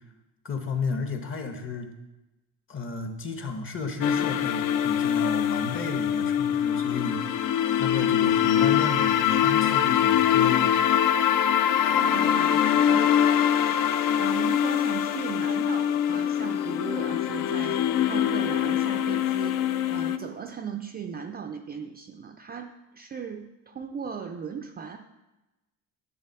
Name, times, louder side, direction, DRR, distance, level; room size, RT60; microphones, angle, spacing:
voice 1, 0.4-1.9 2.7-7.4 7.7-10.7, left 4 dB, 35° left, 5 dB, 1.1 m, -33 dB
sound 1, 4.0-20.2, left 9 dB, 55° left, 0.5 m, -23 dB
voice 2, 11.7-13.3 13.9-25.0, right 6 dB, 25° right, 5 dB, 0.4 m, -38 dB
11.5 x 3.8 x 6.8 m, 1.0 s
cardioid pair, 155°, 38 cm